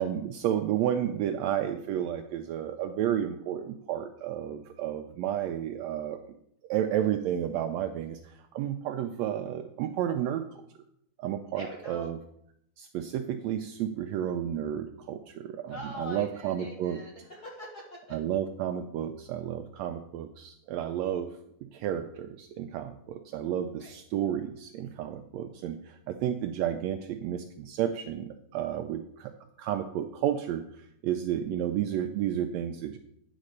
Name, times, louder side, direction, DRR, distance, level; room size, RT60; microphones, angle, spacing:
voice 1, 0.0-6.2 6.6-10.5 11.2-12.2 12.8-17.0 18.1-29.3 29.6-33.0, right 10 dB, 80° right, 7 dB, 1.6 m, -32 dB
voice 2, 11.5-12.1 15.7-18.2 23.8-23.9, equal, 55° left, -2 dB, 1.0 m, -43 dB
10.0 x 4.1 x 6.4 m, 0.73 s
omnidirectional pair, 3.5 m